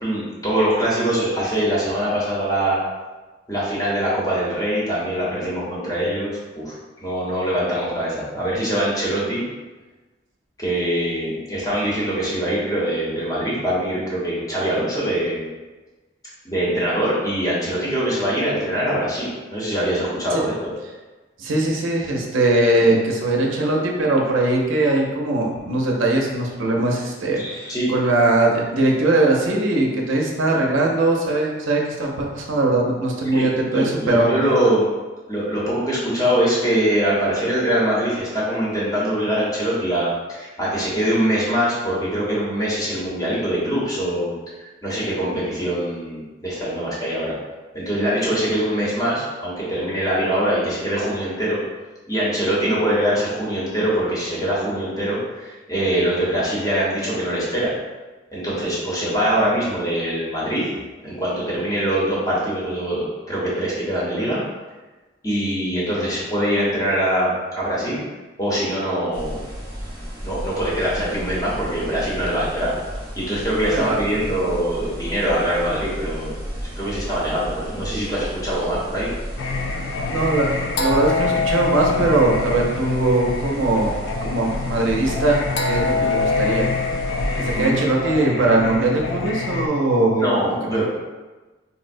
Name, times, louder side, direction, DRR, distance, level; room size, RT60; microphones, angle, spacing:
voice 1, 0.0-2.8 3.5-6.8 7.0-9.4 10.6-15.5 16.4-20.5 27.4-27.9 33.3-34.8 35.3-44.3 44.8-47.3 47.7-51.6 52.1-57.7 58.3-60.6 61.0-64.4 65.2-68.0 68.4-69.4 70.2-72.7 73.1-76.4 76.8-79.1 85.9-86.1 87.6-87.7 90.2-90.8, right 1 dB, 20° left, -7 dB, 0.8 m, -23 dB
voice 2, 21.4-34.3 73.7-73.9 80.1-84.0 84.2-86.7 87.4-90.2 90.6-90.8, right 2 dB, 80° right, -1 dB, 0.5 m, -20 dB
sound 1, 69.1-87.7, equal, 25° right, 0.8 m, -33 dB
Singing, 79.4-89.7, left 4 dB, 70° left, 0.3 m, -25 dB
4.0 x 2.0 x 2.6 m, 1.2 s
head